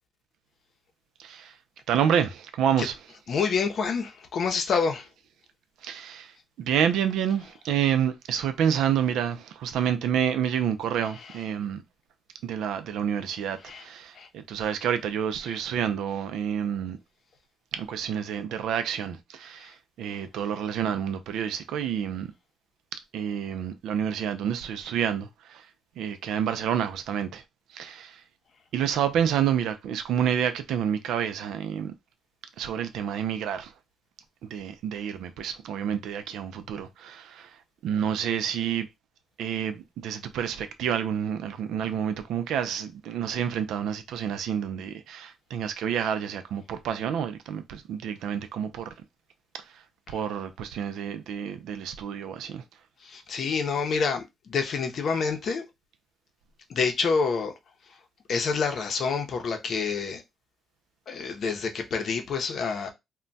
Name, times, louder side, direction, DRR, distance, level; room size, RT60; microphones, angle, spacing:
voice 1, 1.2-1.5 1.9-3.0 5.8-11.8 12.4-17.0 17.7-22.3 22.9-25.7 26.0-27.4 27.7-28.2 28.7-31.9 32.6-33.7 34.5-37.6 37.8-38.9 39.4-48.9 49.5-49.8 50.1-52.6, right 8 dB, 80° right, 0.4 m, -29 dB
voice 2, 3.3-5.1 13.7-13.8 14.1-14.3 50.1-50.2 53.0-55.6 56.7-57.5 58.3-60.2 61.1-62.9, left 5 dB, 60° left, 0.6 m, -27 dB
2.2 x 2.2 x 3.9 m
cardioid pair, 90°, 0 cm